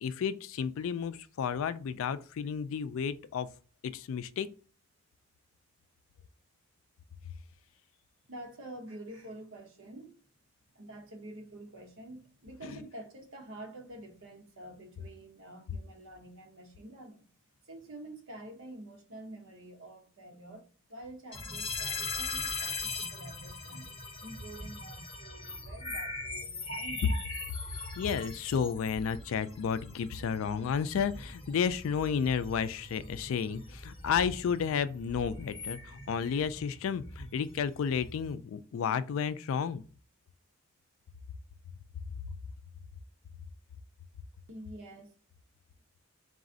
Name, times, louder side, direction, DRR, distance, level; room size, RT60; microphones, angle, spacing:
voice 1, 0.0-3.5 3.8-4.5 12.6-12.8 28.0-39.8, left 7 dB, 70° left, 0.3 m, -32 dB
voice 2, 8.3-10.2 10.7-17.3 17.6-27.2 44.5-45.1, right 1 dB, 65° right, 0.9 m, -48 dB
sound 1, 21.3-38.3, left 3 dB, 25° left, 0.9 m, -41 dB
4.0 x 2.5 x 3.8 m
head